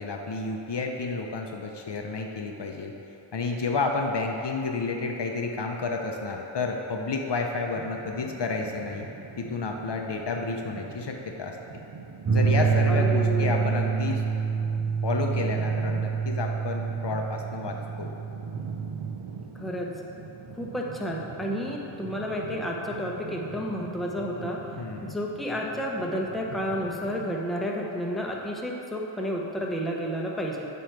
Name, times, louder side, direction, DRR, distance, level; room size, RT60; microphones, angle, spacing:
voice 1, 0.0-2.9 3.3-9.1 9.4-11.6 12.3-14.2 15.0-18.1 24.8-25.2, left 3 dB, 60° left, 2 dB, 0.6 m, -30 dB
sound 1, 7.7-27.3, right 5 dB, 80° right, 0.6 m, -43 dB
sound 2, 12.3-19.2, right 5 dB, 35° right, 0.5 m, -26 dB
voice 2, 12.9-13.7 19.5-19.9 20.5-24.6 25.0-30.7, equal, ahead, -2 dB, 0.7 m, -31 dB
8.7 x 3.1 x 4.5 m, 3.0 s
wide cardioid pair, 50°, 47 cm